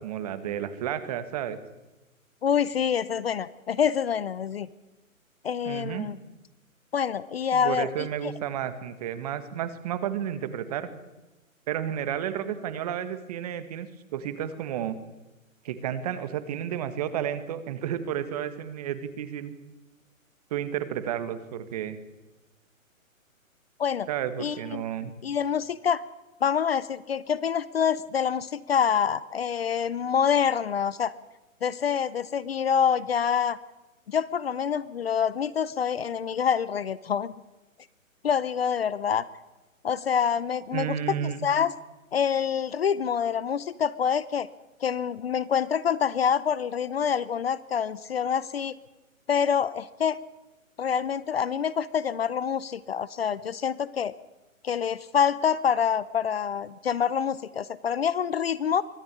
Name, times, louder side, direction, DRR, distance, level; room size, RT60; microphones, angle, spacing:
voice 1, 0.0-1.6 5.6-6.1 7.5-10.9 11.7-15.0 15.6-19.5 20.5-22.0 24.1-25.1 40.7-41.5, right 10 dB, 30° right, 11 dB, 1.7 m, -32 dB
voice 2, 2.4-4.7 5.4-6.2 6.9-8.1 23.8-24.1 24.4-26.0 26.4-31.1 31.6-33.6 34.1-37.3 38.2-39.3 39.8-41.7 42.1-44.5 44.8-48.8 49.3-50.2 50.8-54.1 54.6-58.8, left 7 dB, 45° left, 19 dB, 0.8 m, -26 dB
24.0 x 14.5 x 9.8 m, 1.1 s
hypercardioid pair, 160°, 41 cm